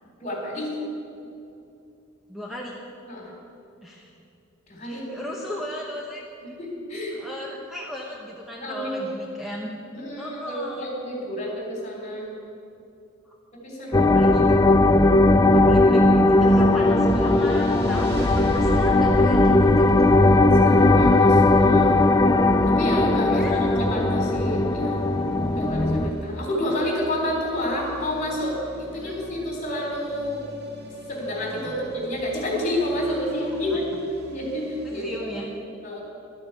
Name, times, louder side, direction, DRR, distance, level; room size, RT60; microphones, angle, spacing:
voice 1, 0.2-0.7 3.1-3.3 4.7-5.2 6.6-7.2 8.6-9.1 9.9-12.3 13.6-14.1 20.7-21.9 22.7-25.1 25.6-30.4 31.1-33.9 34.3-35.1 35.8-36.0, left 1 dB, 35° left, -1 dB, 3.7 m, -29 dB
voice 2, 2.3-2.8 3.8-4.1 4.8-6.5 7.1-9.7 10.2-10.9 13.2-13.3 14.0-14.6 15.5-19.9 23.2-23.6 29.0-29.1 31.5-31.8 34.8-35.5, left 1 dB, ahead, -2 dB, 1.0 m, -36 dB
sound 1, 13.9-26.1, left 2 dB, 15° left, 0.5 m, -18 dB
sound 2, 16.7-35.2, equal, 50° right, 1.7 m, -38 dB
12.5 x 8.8 x 8.3 m, 2.6 s
head